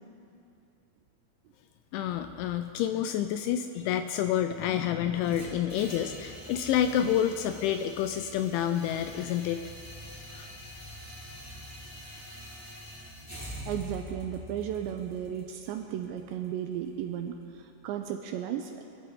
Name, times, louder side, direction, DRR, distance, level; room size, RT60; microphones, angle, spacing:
voice 1, 1.9-9.7 10.3-10.6, left 10 dB, 85° left, 8 dB, 2.8 m, -29 dB
sound 1, 5.2-17.3, left 1 dB, 10° left, 1.0 m, -45 dB
voice 2, 13.4-18.8, right 9 dB, 85° right, 5 dB, 2.6 m, -35 dB
24.5 x 15.0 x 3.7 m, 2.7 s
omnidirectional pair, 5.7 m